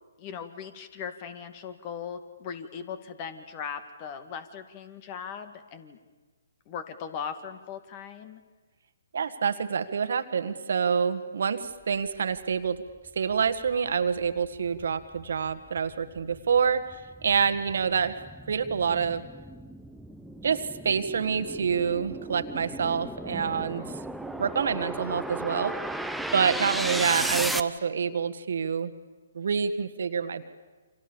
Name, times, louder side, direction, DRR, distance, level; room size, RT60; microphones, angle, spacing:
voice 1, 0.2-6.0 6.7-8.4, left 7 dB, 35° left, 10 dB, 2.2 m, -39 dB
voice 2, 9.1-12.8 13.2-18.2 18.5-19.2 20.4-23.8 24.4-25.8 26.3-28.9 29.4-30.4, right 6 dB, 65° right, 10 dB, 1.7 m, -27 dB
sound 1, 12.9-13.0 13.5-27.6, right 1 dB, ahead, 1.0 m, -35 dB
29.5 x 26.0 x 7.1 m, 1.3 s
figure-of-eight pair, 135°, 0 cm